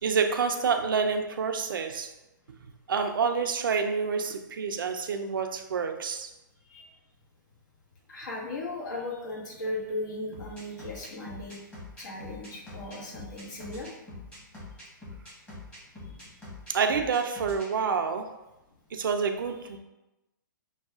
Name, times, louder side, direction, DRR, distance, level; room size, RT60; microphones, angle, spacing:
voice 1, 0.0-2.1 2.9-6.3 16.7-18.4 18.9-19.8, right 5 dB, 85° right, 5 dB, 0.5 m, -28 dB
voice 2, 6.6-7.0 8.1-11.6 12.0-13.9 16.2-16.3, left 2 dB, 60° left, -3 dB, 1.3 m, -37 dB
sound 1, 10.3-17.7, left 2 dB, 10° left, 1.2 m, -44 dB
6.3 x 2.3 x 2.4 m, 0.97 s
hypercardioid pair, 150°, 11 cm